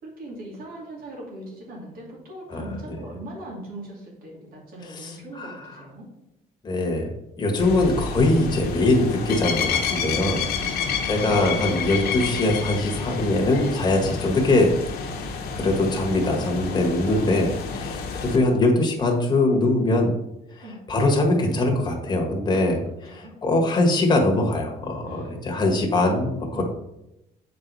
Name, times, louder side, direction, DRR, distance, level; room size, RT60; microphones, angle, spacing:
voice 1, 0.0-6.1 9.5-9.8 10.6-11.5 17.0-17.4 20.6-20.8 22.8-23.3 25.0-25.4 26.5-26.6, right 1 dB, 65° right, -2 dB, 2.7 m, -40 dB
voice 2, 2.5-3.0 5.0-5.6 6.6-7.1 7.4-14.7 15.6-17.5 17.7-20.1 20.9-22.8 23.4-26.6, left 2 dB, 25° left, 0 dB, 1.5 m, -22 dB
sound 1, 7.6-18.4, left 5 dB, 80° left, 1.1 m, -29 dB
7.4 x 4.7 x 4.1 m, 0.88 s
cardioid pair, 120°, 16 cm